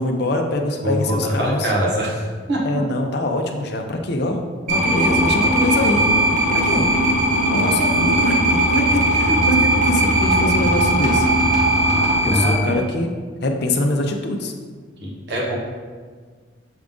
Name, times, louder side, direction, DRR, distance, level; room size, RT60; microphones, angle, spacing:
voice 1, 0.0-1.7 2.6-6.1 6.5-6.8 7.5-11.3 12.2-13.1 13.4-14.5, left 1 dB, 55° left, 3 dB, 0.6 m, -23 dB
voice 2, 0.8-2.8 9.3-9.4 12.2-12.8 15.0-15.6, equal, 60° right, -4 dB, 1.5 m, -23 dB
sound 1, 4.7-12.6, right 1 dB, 40° right, 1.1 m, -18 dB
7.1 x 3.7 x 3.7 m, 1.6 s
head